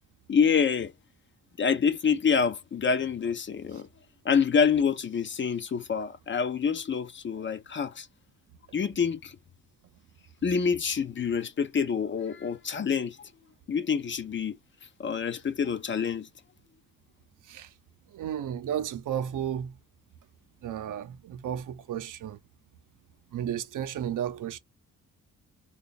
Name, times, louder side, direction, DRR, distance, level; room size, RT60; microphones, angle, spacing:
voice 1, 0.3-0.9 1.6-3.9 4.2-8.1 8.7-9.4 10.4-13.3 13.7-14.6 15.0-16.3, left 6 dB, 35° left, 0.5 m, -27 dB
voice 2, 18.1-19.7 20.6-22.4 23.3-24.6, right 10 dB, 65° right, 0.6 m, -33 dB
3.0 x 2.3 x 4.0 m
cardioid pair, 100°, 33 cm